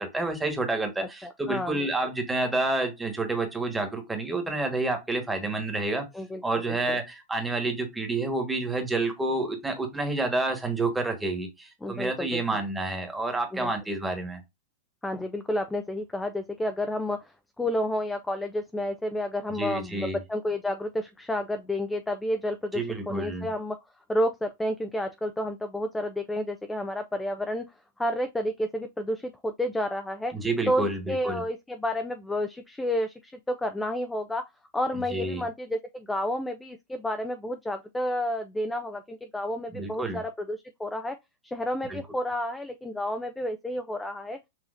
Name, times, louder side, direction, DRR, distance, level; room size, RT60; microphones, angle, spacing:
voice 1, 0.0-6.0 6.4-14.4 19.6-20.2 22.7-23.5 30.3-31.4 35.1-35.4 39.7-40.2 41.9-42.0, right 2 dB, 10° right, 1.4 m, -29 dB
voice 2, 1.0-1.9 6.1-7.0 11.8-12.4 13.5-13.7 15.0-23.8 24.1-27.6 28.0-30.3 30.7-34.4 34.7-41.2 41.4-44.4, left 1 dB, 5° left, 0.4 m, -30 dB
6.2 x 2.8 x 2.5 m
hypercardioid pair, 130°, 0 cm